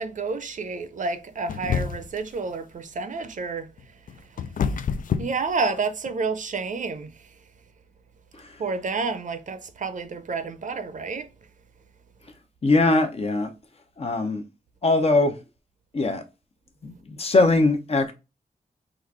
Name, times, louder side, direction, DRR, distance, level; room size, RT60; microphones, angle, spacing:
voice 1, 0.0-3.7 4.6-4.8 5.2-7.4 8.6-11.3, right 4 dB, 60° right, 0.6 m, -30 dB
sound 1, 1.5-2.3 3.8-6.1, left 6 dB, 70° left, 0.4 m, -28 dB
voice 2, 12.6-13.5 14.0-14.4 14.8-15.3 15.9-16.2 16.8-18.1, left 2 dB, 45° left, 0.8 m, -21 dB
3.9 x 2.5 x 4.6 m
wide cardioid pair, 145°, 15 cm